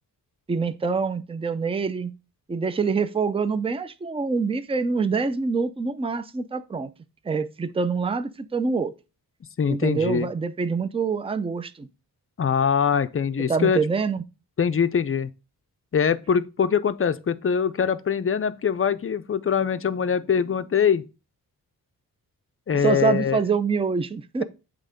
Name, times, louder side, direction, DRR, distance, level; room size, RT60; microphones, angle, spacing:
voice 1, 0.5-2.1 2.5-6.9 7.2-8.9 9.7-11.9 13.5-14.2 22.7-24.4, right 5 dB, 15° right, 0.5 m, -25 dB
voice 2, 9.6-10.3 12.4-13.8 14.6-15.3 15.9-21.0 22.7-23.4, left 7 dB, 35° left, 0.5 m, -23 dB
7.9 x 3.6 x 5.0 m
wide cardioid pair, 100°, 38 cm